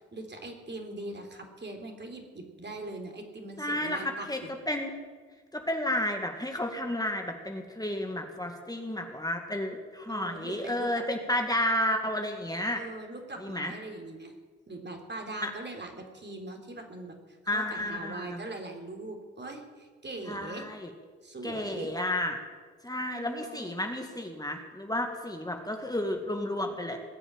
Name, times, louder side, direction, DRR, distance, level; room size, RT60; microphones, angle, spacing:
voice 1, 0.0-4.5 10.1-11.1 12.8-14.3 14.7-20.7 21.2-21.9 23.0-23.8, right 2 dB, 35° right, 3 dB, 3.7 m, -41 dB
voice 2, 3.6-4.4 4.7-4.9 5.5-12.8 13.4-13.7 15.4-15.5 17.5-18.4 20.2-20.9 21.4-22.4 22.8-27.0, left 1 dB, 10° left, 3 dB, 2.2 m, -32 dB
20.0 x 7.1 x 9.0 m, 1.5 s
hypercardioid pair, 45°, 30 cm